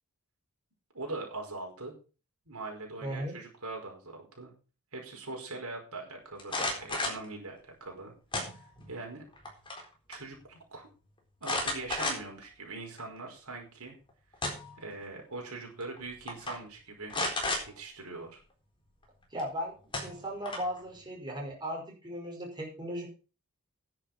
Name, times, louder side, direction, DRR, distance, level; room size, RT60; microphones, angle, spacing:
voice 1, 0.9-1.9 2.5-4.5 4.9-8.1 8.5-9.2 10.1-10.9 11.4-14.0 14.8-17.2 17.8-18.4, right 3 dB, 90° right, 1 dB, 5.2 m, -42 dB
voice 2, 3.0-3.4 19.3-19.7 20.0-23.1, equal, 20° right, -1 dB, 5.1 m, -37 dB
sound 1, 6.4-7.2 8.3-8.9 9.3-9.9 10.1-10.2 11.4-12.4 13.0-13.1 14.1-14.8 15.8-16.0 16.3-16.5 17.1-17.6 19.4-19.5 19.9-20.8, left 2 dB, 25° left, 4.1 m, -33 dB
10.5 x 7.9 x 6.3 m, 0.35 s
head